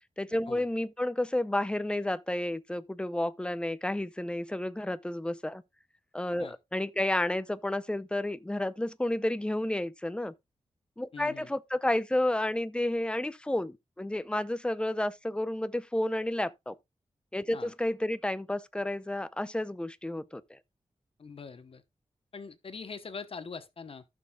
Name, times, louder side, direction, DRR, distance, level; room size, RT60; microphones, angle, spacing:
voice 1, 0.2-5.6 6.1-10.3 11.0-16.8 17.3-20.6, left 1 dB, 10° left, 0.6 m, -31 dB
voice 2, 11.1-11.5 17.5-17.7 21.2-21.8 22.3-24.0, left 5 dB, 55° left, 1.0 m, -43 dB
14.5 x 6.3 x 2.3 m
wide cardioid pair, 125°, 12 cm